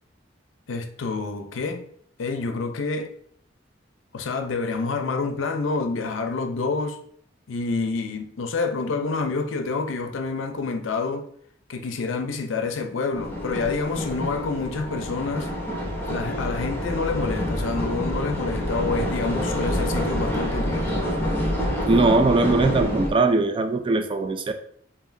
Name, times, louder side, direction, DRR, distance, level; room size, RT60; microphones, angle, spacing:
voice 1, 0.7-1.9 2.2-3.1 4.1-7.0 7.5-11.3 11.7-15.5 16.1-21.1, left 4 dB, 80° left, 0.5 m, -28 dB
sound 1, 13.1-23.1, left 1 dB, 10° left, 0.9 m, -27 dB
voice 2, 21.9-24.5, right 3 dB, 25° right, 0.3 m, -20 dB
4.9 x 2.7 x 2.6 m
head